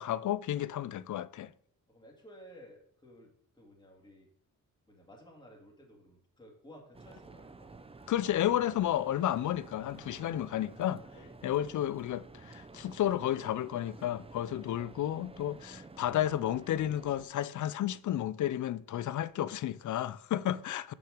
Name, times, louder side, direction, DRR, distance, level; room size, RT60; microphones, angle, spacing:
voice 1, 0.0-1.5 8.1-11.0 11.4-20.9, left 12 dB, 65° left, 0.4 m, -32 dB
voice 2, 1.9-3.3 3.6-4.3 4.9-7.7 11.1-11.7 20.3-20.7, equal, 15° left, 2.4 m, -55 dB
sound 1, 6.9-17.3, right 3 dB, 15° right, 0.6 m, -51 dB
6.1 x 5.9 x 4.9 m
cardioid pair, 80°, 33 cm